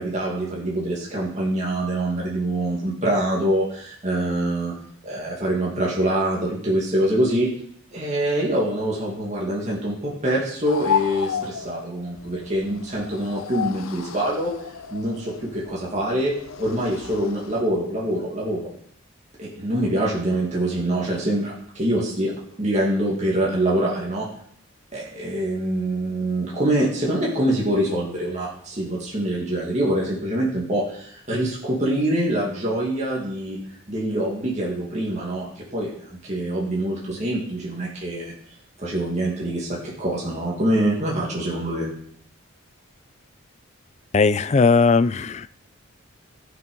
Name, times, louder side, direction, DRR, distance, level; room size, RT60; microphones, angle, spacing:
voice 1, 0.0-4.7 5.0-7.5 7.9-14.5 14.9-16.3 16.6-18.7 19.4-22.3 22.6-24.3 24.9-33.6 33.9-38.3 38.8-41.9, right 1 dB, 35° right, -5 dB, 2.2 m, -25 dB
sound 1, 10.6-17.6, left 7 dB, 80° left, 0.6 m, -32 dB
voice 2, 44.1-45.5, left 4 dB, 30° left, 14 dB, 0.3 m, -18 dB
14.0 x 6.2 x 5.3 m, 0.64 s
head